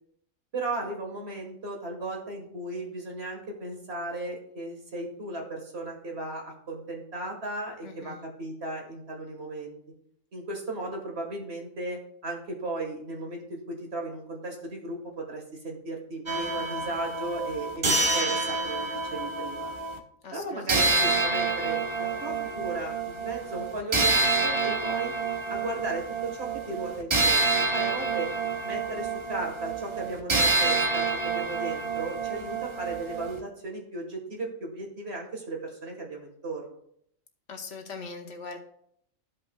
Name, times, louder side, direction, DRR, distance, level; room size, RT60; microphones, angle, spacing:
voice 1, 0.5-9.8 10.3-19.7 20.3-25.1 25.5-28.3 28.6-36.8, right 2 dB, 50° right, 1 dB, 1.8 m, -36 dB
voice 2, 7.8-8.2 20.2-21.1 37.5-38.6, left 4 dB, 60° left, 4 dB, 1.3 m, -41 dB
sound 1, 16.3-20.0 20.7-33.4, right 3 dB, 35° right, 0.5 m, -28 dB
14.0 x 5.3 x 2.3 m, 0.69 s
omnidirectional pair, 1.4 m